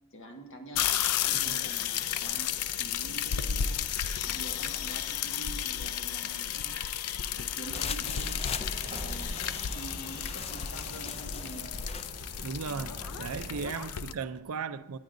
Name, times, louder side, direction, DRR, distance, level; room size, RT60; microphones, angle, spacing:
voice 1, 0.1-0.9 1.2-3.8 4.2-6.8 7.3-8.5 8.9-12.0 12.8-13.0 13.8-13.9, right 2 dB, 60° left, 1.5 m, -46 dB
sound 1, 0.7-14.1, left 9 dB, 80° left, 0.5 m, -33 dB
sound 2, 7.6-12.1, left 5 dB, 25° left, 0.4 m, -39 dB
Truck, 8.1-13.7, right 1 dB, 30° right, 2.0 m, -44 dB
voice 2, 12.4-15.0, right 5 dB, 75° right, 0.5 m, -37 dB
19.5 x 9.4 x 2.6 m
head